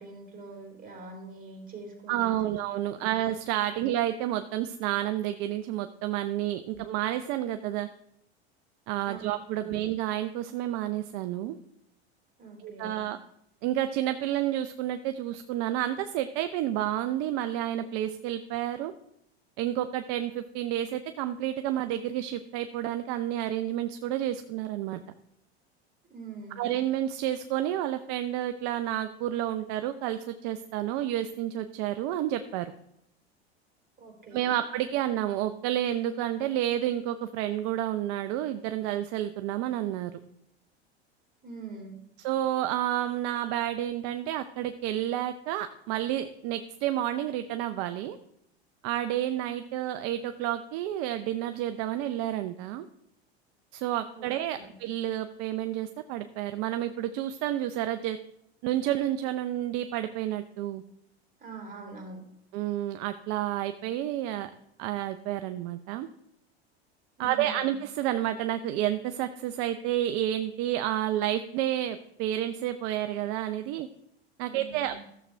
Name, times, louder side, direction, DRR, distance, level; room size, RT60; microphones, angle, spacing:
voice 1, 0.0-2.6 3.0-3.2 3.7-3.8 6.7-6.8 9.0-9.2 12.4-13.1 26.1-26.7 34.0-34.5 41.4-42.0 54.2-54.3 54.5-54.7 61.4-62.2 67.2-67.7 74.4-75.0, right 3 dB, 25° right, 1 dB, 3.6 m, -44 dB
voice 2, 2.1-7.9 8.9-11.6 12.6-13.2 13.6-18.9 19.6-25.0 26.6-32.7 34.3-40.2 42.2-48.2 48.8-52.9 53.7-58.2 58.6-60.8 62.5-64.5 64.8-66.1 67.2-73.9 74.4-75.0, right 12 dB, 55° right, 9 dB, 0.7 m, -30 dB
14.0 x 7.4 x 3.3 m, 0.77 s
hypercardioid pair, 95°, 32 cm